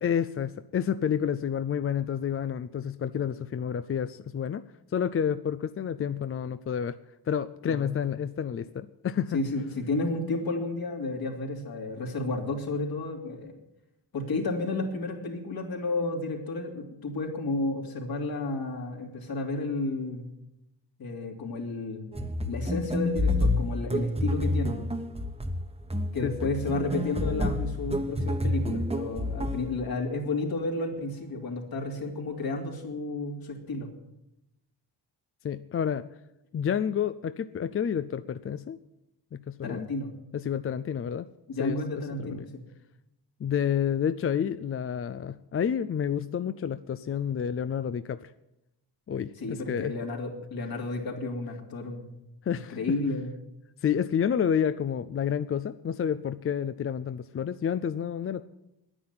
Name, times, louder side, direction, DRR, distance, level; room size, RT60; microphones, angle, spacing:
voice 1, 0.0-4.6 4.9-7.0 7.3-9.4 26.2-26.5 35.4-36.0 36.5-38.8 39.3-39.9 40.3-41.3 41.6-42.5 43.4-48.3 49.1-49.9 52.5-52.8 53.8-58.5, left 8 dB, 35° left, 13 dB, 0.4 m, -29 dB
voice 2, 9.3-13.6 14.1-20.3 21.0-22.1 22.5-24.8 26.1-33.9 39.6-40.1 41.5-42.6 49.4-52.1 52.5-53.3, left 2 dB, 65° left, 0 dB, 3.1 m, -32 dB
sound 1, 22.1-29.8, left 1 dB, 15° right, 1.1 m, -29 dB
10.5 x 9.9 x 9.5 m, 0.88 s
wide cardioid pair, 145°, 40 cm